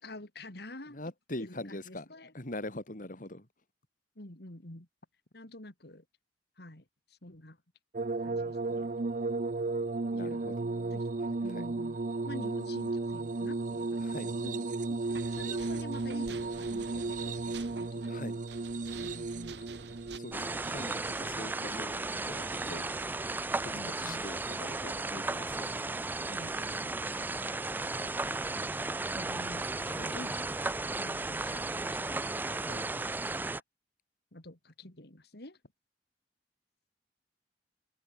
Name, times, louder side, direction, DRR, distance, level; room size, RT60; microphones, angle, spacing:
voice 1, 0.0-1.0 1.4-2.3 4.1-4.9 5.3-6.0 6.6-7.6 8.2-8.9 10.2-10.5 10.9-11.1 11.4-12.0 12.2-14.7 15.1-18.2 19.0-19.6 23.7-24.2 26.3-26.9 28.1-28.4 28.7-30.5 31.0-32.1 34.3-35.6, left 1 dB, 65° left, 3.2 m, -48 dB
voice 2, 0.9-2.1 2.3-3.5 10.1-10.9 11.3-11.7 14.0-14.3 18.1-18.4 20.2-21.9 22.2-22.9 23.6-23.7 24.0-25.8 29.8-30.2 32.6-32.8, left 1 dB, 50° left, 3.4 m, -43 dB
sound 1, 7.9-23.2 24.1-24.8 26.2-26.3, right 3 dB, 45° right, 0.6 m, -35 dB
sound 2, 15.0-20.2, right 4 dB, 70° right, 2.1 m, -50 dB
sound 3, 20.3-33.6, right 2 dB, 10° right, 0.3 m, -35 dB
head